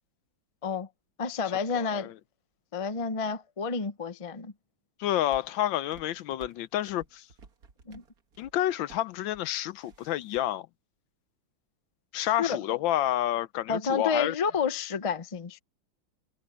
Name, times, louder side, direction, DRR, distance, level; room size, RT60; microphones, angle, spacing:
voice 1, 1.2-2.1 2.7-4.5 7.9-8.0 12.4-12.6 13.7-15.6, left 5 dB, 40° left, 0.4 m, -30 dB
voice 2, 1.7-2.1 5.0-7.3 8.4-10.7 12.1-14.3, left 13 dB, 75° left, 1.3 m, -29 dB
sound 1, 5.3-10.4, right 5 dB, 50° right, 1.9 m, -55 dB
omnidirectional pair, 2.2 m